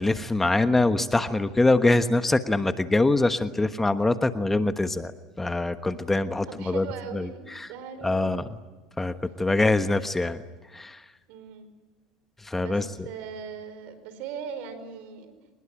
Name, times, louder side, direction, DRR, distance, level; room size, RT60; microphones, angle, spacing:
voice 1, 0.0-5.1 5.4-6.9 7.1-7.7 8.0-8.4 9.0-10.4 10.7-11.0 12.4-12.8, left 2 dB, 10° left, 10 dB, 1.2 m, -24 dB
voice 2, 6.5-8.4 11.3-11.7 12.6-15.3, right 6 dB, 65° right, 11 dB, 4.8 m, -39 dB
25.5 x 21.0 x 10.0 m, 1.2 s
supercardioid pair, 100°, 2 cm